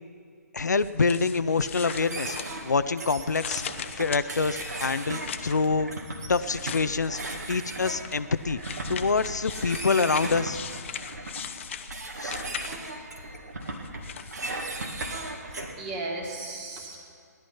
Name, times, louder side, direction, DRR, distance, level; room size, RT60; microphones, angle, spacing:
voice 1, 0.5-3.6 4.0-5.9 6.3-7.2 7.5-8.6 8.9-10.6 12.2-12.4, left 4 dB, 75° left, 13 dB, 0.6 m, -26 dB
sound 1, 0.8-2.9 3.3-5.7 6.4-7.4 8.0-13.0 13.6-14.4, left 8 dB, 45° left, 0.8 m, -39 dB
sound 2, 1.8-15.7, right 2 dB, 70° right, 2.2 m, -37 dB
sound 3, 8.9-9.5 10.8-11.5 12.8-13.5 14.8-15.5, left 1 dB, 60° left, 1.4 m, -53 dB
voice 2, 15.3-17.0, right 2 dB, 25° right, 0 dB, 2.5 m, -36 dB
17.0 x 11.5 x 5.7 m, 2.3 s
figure-of-eight pair, 135°, 9 cm